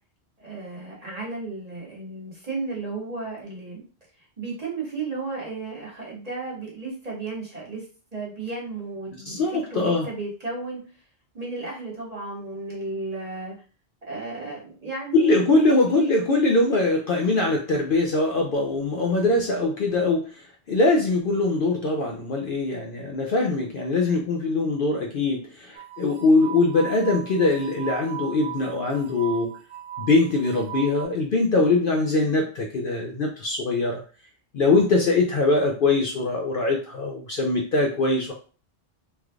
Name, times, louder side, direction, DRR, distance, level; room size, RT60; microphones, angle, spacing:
voice 1, 0.4-3.8 4.4-7.9 8.1-9.4 9.7-10.8 11.3-13.5 14.1-15.6 15.9-16.1, right 3 dB, 35° right, -4 dB, 1.2 m, -34 dB
voice 2, 9.3-10.1 15.1-29.5 30.0-34.0 34.5-38.3, left 2 dB, 60° left, 1 dB, 0.6 m, -22 dB
sound 1, 25.7-31.1, right 10 dB, 80° right, 1.0 m, -37 dB
3.3 x 3.0 x 2.3 m, 0.38 s
omnidirectional pair, 1.2 m